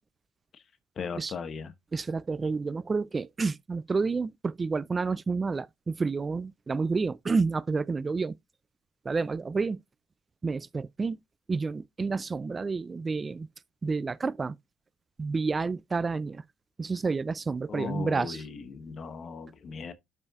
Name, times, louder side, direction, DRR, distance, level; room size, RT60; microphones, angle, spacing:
voice 1, 1.0-1.7 17.7-19.9, left 6 dB, 45° left, 1.1 m, -38 dB
voice 2, 1.9-8.4 9.0-9.8 10.4-11.2 11.5-13.5 13.8-14.6 15.2-16.4 16.8-18.4, right 4 dB, 25° right, 0.3 m, -29 dB
11.5 x 5.4 x 2.4 m
supercardioid pair, 90°, 0 cm